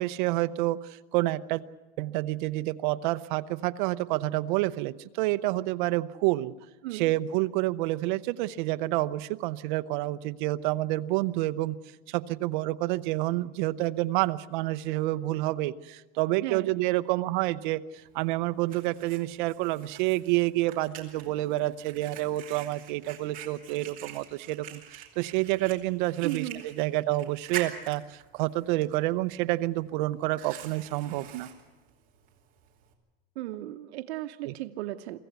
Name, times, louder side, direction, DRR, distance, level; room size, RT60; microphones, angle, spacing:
voice 1, 0.0-1.6 2.0-6.5 6.9-11.8 12.1-31.5 34.4-34.5, right 17 dB, 50° right, 12 dB, 0.7 m, -28 dB
voice 2, 16.4-16.7 26.2-26.7 33.4-35.2, right 15 dB, 85° right, 8 dB, 0.9 m, -35 dB
Fire, 18.0-32.9, right 10 dB, 25° right, 2.6 m, -45 dB
24.0 x 15.0 x 8.1 m, 1.1 s
supercardioid pair, 175°, 32 cm